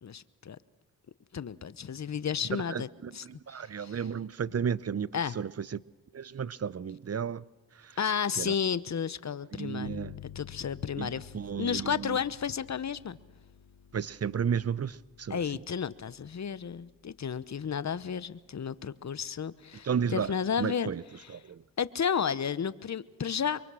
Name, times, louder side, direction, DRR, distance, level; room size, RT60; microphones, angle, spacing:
voice 1, 0.0-0.6 1.3-2.9 3.1-4.0 5.1-5.4 8.0-10.0 10.2-11.3 11.6-13.2 15.3-20.9 21.2-21.4 21.8-23.6, left 7 dB, 45° left, 1.0 m, -32 dB
voice 2, 2.5-5.1 5.3-5.8 6.1-7.4 7.8-8.0 8.4-8.5 9.5-10.1 11.0-12.2 13.9-15.4 19.8-21.0 21.3-21.6, right 7 dB, 40° right, 0.8 m, -33 dB
sound 1, 9.8-19.1, left 10 dB, 75° left, 1.2 m, -52 dB
24.0 x 23.0 x 6.4 m
supercardioid pair, 45°, 38 cm